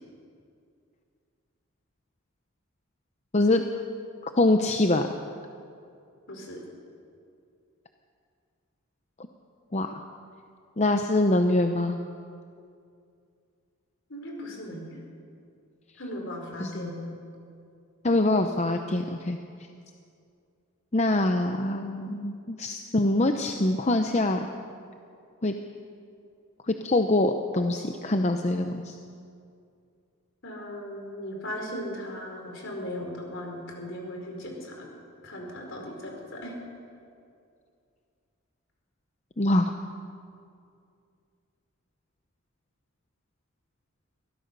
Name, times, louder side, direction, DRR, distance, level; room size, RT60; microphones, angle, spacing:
voice 1, 3.3-3.6 4.4-5.1 9.7-10.0 10.8-12.0 16.6-16.9 18.0-19.4 20.9-24.5 25.4-25.5 26.6-29.0 39.4-39.7, left 2 dB, 30° left, 6 dB, 0.7 m, -24 dB
voice 2, 6.3-6.6 14.1-15.0 16.0-17.1 30.4-34.9 35.2-36.5, left 1 dB, 60° left, 1 dB, 4.6 m, -37 dB
23.5 x 16.0 x 6.8 m, 2.4 s
head